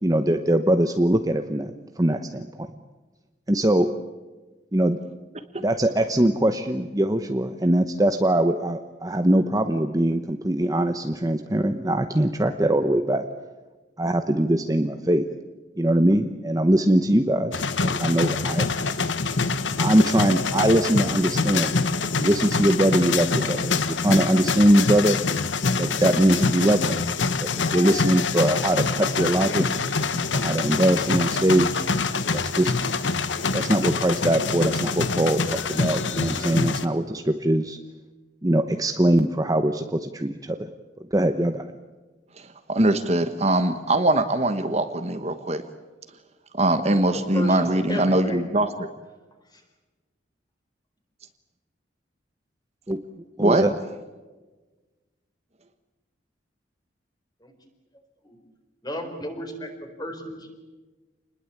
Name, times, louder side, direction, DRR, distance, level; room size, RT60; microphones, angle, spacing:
voice 1, 0.0-2.7 3.5-3.9 4.7-5.0 5.6-13.3 14.0-15.3 15.8-18.7 19.8-21.8 22.2-25.2 25.8-27.0 27.4-29.7 30.3-31.8 32.3-32.8 33.5-37.8 38.4-40.7 41.1-41.7 52.9-53.0 53.4-53.7, right 1 dB, 20° right, 7 dB, 0.9 m, -22 dB
sound 1, 17.5-36.9, left 4 dB, 85° left, 1.3 m, -25 dB
voice 2, 42.4-45.6 46.6-48.9 53.4-53.6, right 1 dB, 35° right, 8 dB, 1.3 m, -22 dB
voice 3, 47.1-48.5 49.5-49.6 57.4-57.5 58.2-58.4 58.8-60.4, equal, 20° left, 5 dB, 4.3 m, -34 dB
28.0 x 20.5 x 8.7 m, 1.3 s
head